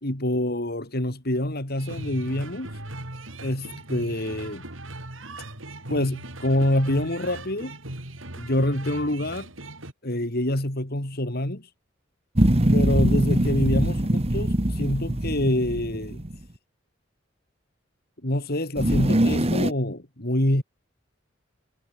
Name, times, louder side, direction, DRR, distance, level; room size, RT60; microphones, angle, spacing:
voice 1, 0.0-2.8 3.4-4.7 5.9-7.7 8.4-9.5 10.0-11.7 12.7-16.2 18.2-20.6, left 1 dB, 50° left, 3.6 m, -26 dB
sound 1, 1.8-9.9, right 2 dB, 85° right, 5.4 m, -39 dB
sound 2, 12.4-16.3 18.8-19.7, right 1 dB, 30° right, 1.5 m, -22 dB
head